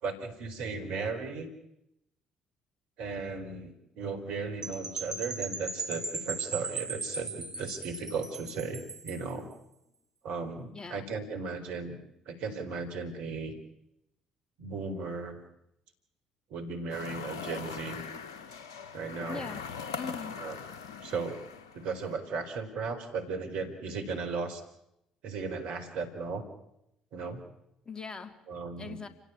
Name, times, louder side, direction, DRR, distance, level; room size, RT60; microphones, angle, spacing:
voice 1, 0.0-1.5 3.0-9.5 10.2-12.0 12.3-13.6 14.6-15.4 16.5-18.0 18.9-19.5 20.4-20.6 21.0-21.4 21.7-24.6 25.2-26.4 27.1-27.4 28.5-29.0, right 4 dB, 65° right, 5 dB, 4.3 m, -36 dB
Percussion / Wind chime, 4.6-9.3, right 3 dB, 25° right, 3.1 m, -38 dB
voice 2, 10.7-11.1 19.3-19.7 20.0-20.4 27.8-28.3 28.7-29.1, left 5 dB, 30° left, 8 dB, 3.2 m, -41 dB
sound 1, 16.9-22.1, left 6 dB, 80° left, 1.4 m, -41 dB
29.0 x 17.0 x 8.5 m, 0.84 s
hypercardioid pair, 50°, 3 cm